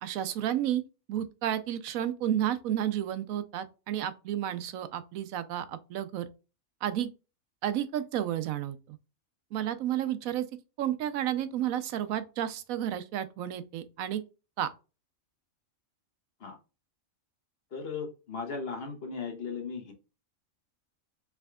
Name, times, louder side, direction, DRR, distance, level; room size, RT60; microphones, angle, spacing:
voice 1, 0.0-0.8 1.1-6.3 6.8-7.1 7.6-9.0 9.5-10.4 10.8-14.2 14.6-14.7, right 11 dB, 80° right, 1.0 m, -31 dB
voice 2, 17.7-19.9, left 5 dB, 50° left, 1.1 m, -37 dB
4.5 x 3.5 x 2.3 m
omnidirectional pair, 1.4 m